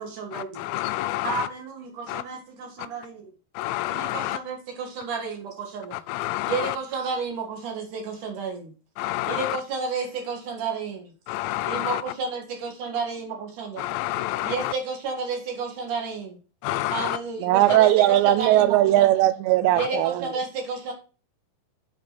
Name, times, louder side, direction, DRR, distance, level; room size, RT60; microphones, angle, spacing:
voice 1, 0.0-0.7 1.2-3.3 3.9-6.0 6.5-8.7 9.3-11.1 11.7-13.9 14.4-16.4 16.9-19.2 19.8-20.9, right 4 dB, 60° right, 2.6 m, -31 dB
voice 2, 0.7-1.3 2.1-2.2 3.6-4.1 6.1-6.5 9.0-9.4 11.3-11.9 13.8-14.5 16.6-17.0, left 16 dB, 85° left, 2.8 m, -28 dB
voice 3, 17.4-20.1, right 15 dB, 90° right, 3.0 m, -19 dB
8.1 x 5.9 x 4.0 m
omnidirectional pair, 5.0 m